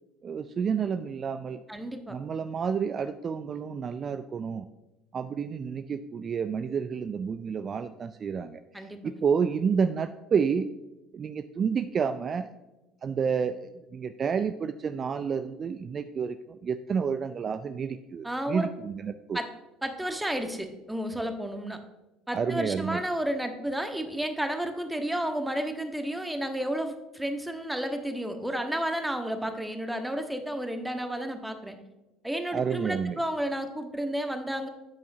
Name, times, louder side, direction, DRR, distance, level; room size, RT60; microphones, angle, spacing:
voice 1, 0.2-1.6 2.1-4.7 5.1-10.7 11.1-12.5 13.0-19.4 22.3-23.0 32.5-33.2, right 6 dB, 40° right, 11 dB, 0.4 m, -30 dB
voice 2, 1.7-2.2 8.7-9.2 18.2-18.7 19.3-19.5 19.8-21.8 22.3-31.8 32.2-34.7, right 1 dB, 5° right, 6 dB, 1.3 m, -32 dB
10.5 x 8.2 x 2.7 m, 1.1 s
figure-of-eight pair, 60°, 0 cm